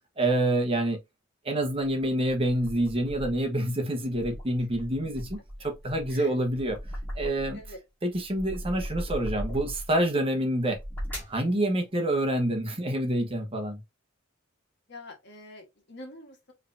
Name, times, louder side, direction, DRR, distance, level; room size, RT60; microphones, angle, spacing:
voice 1, 0.2-1.0 1.4-6.8 7.1-7.6 8.0-10.8 11.3-13.8, right 1 dB, 30° right, 1.1 m, -27 dB
sound 1, 1.6-3.5 4.0-7.7 8.1-10.0 10.6-11.4, equal, 10° left, 1.9 m, -38 dB
voice 2, 5.8-6.3 7.5-7.8 14.9-16.5, left 1 dB, 55° left, 1.5 m, -46 dB
4.8 x 3.4 x 2.7 m
head